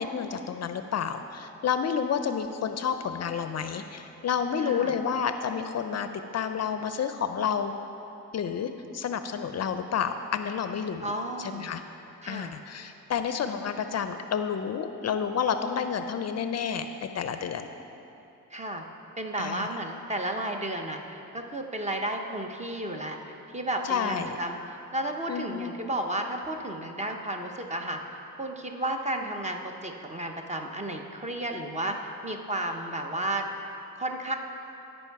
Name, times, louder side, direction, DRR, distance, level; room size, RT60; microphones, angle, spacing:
voice 1, 0.0-6.1 6.3-7.7 8.3-11.1 11.4-11.8 12.3-16.9 17.1-17.7 19.4-19.7 23.8-24.4 25.3-25.7, left 7 dB, 50° left, 8 dB, 0.4 m, -30 dB
voice 2, 4.6-4.9 11.0-11.7 12.2-12.5 18.5-18.8 19.2-23.2 23.5-28.0 28.4-33.4 33.9-34.4, right 1 dB, 20° right, 3 dB, 0.7 m, -33 dB
14.5 x 5.4 x 4.6 m, 2.9 s
cardioid pair, 115°, 34 cm